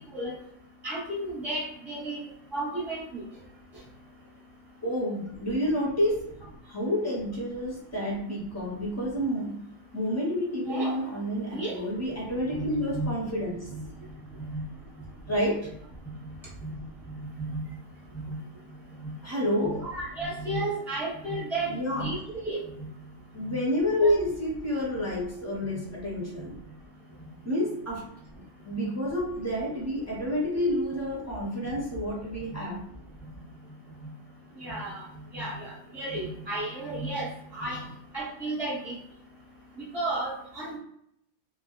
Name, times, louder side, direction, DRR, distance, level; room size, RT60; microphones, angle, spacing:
voice 1, 0.8-2.2 2.5-3.2 10.6-10.9 11.5-11.8 12.6-13.1 14.5-14.6 16.6-16.7 17.4-17.6 18.1-18.3 19.6-22.2 22.4-22.6 24.0-24.1 34.6-35.0 35.3-37.8 38.1-39.0 39.9-40.8, right 2 dB, ahead, -7 dB, 0.8 m, -33 dB
voice 2, 4.8-6.3 6.7-9.7 9.9-13.7 15.3-15.7 19.2-19.8 21.6-22.1 23.3-26.6 27.4-28.1 28.3-32.9, left 1 dB, 20° left, -4 dB, 0.5 m, -29 dB
2.2 x 2.0 x 2.9 m, 0.73 s
omnidirectional pair, 1.3 m